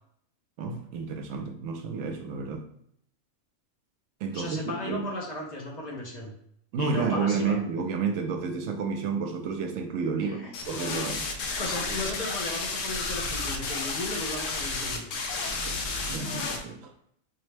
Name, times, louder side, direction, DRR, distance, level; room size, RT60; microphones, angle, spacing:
voice 1, 0.6-2.7 4.2-5.1 6.7-10.4 10.7-11.3 15.6-15.8 16.1-16.9, right 5 dB, 75° right, 5 dB, 0.9 m, -30 dB
voice 2, 4.3-6.3 6.8-7.6 10.2-10.5 11.6-15.1, left 2 dB, 45° left, -2 dB, 0.6 m, -35 dB
sound 1, 10.5-16.6, left 3 dB, 70° left, 0.9 m, -32 dB
4.5 x 2.0 x 3.2 m, 0.70 s
omnidirectional pair, 1.4 m